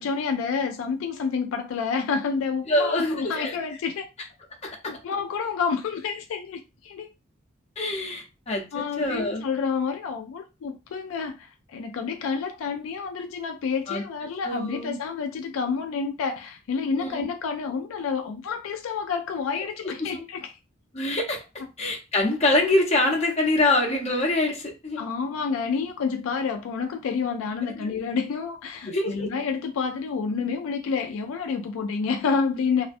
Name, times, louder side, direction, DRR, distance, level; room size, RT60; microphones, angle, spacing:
voice 1, 0.0-4.1 4.6-7.1 8.7-20.5 25.0-32.9, left 5 dB, 75° left, 0.3 m, -29 dB
voice 2, 2.7-3.5 4.8-4.9 7.8-9.4 13.9-14.0 14.4-15.0 16.9-17.3 20.0-20.2 20.9-21.4 21.8-25.1 27.8-27.9 28.9-29.3, left 2 dB, 30° left, 0.6 m, -25 dB
2.4 x 2.1 x 2.5 m
head